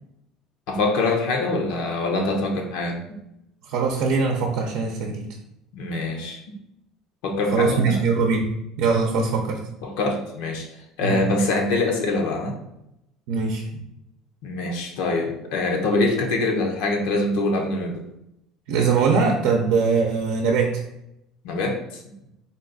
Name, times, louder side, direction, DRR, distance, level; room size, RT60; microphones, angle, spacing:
voice 1, 0.7-3.0 5.7-6.4 7.2-7.9 9.8-10.7 11.0-12.6 14.4-18.0 21.4-22.0, left 2 dB, 80° left, 2 dB, 0.8 m, -24 dB
voice 2, 3.6-5.2 7.5-9.6 11.0-11.2 13.3-13.8 18.7-20.8, right 4 dB, 75° right, 1 dB, 0.6 m, -22 dB
4.0 x 2.4 x 3.9 m, 0.83 s
cardioid pair, 150°, 0 cm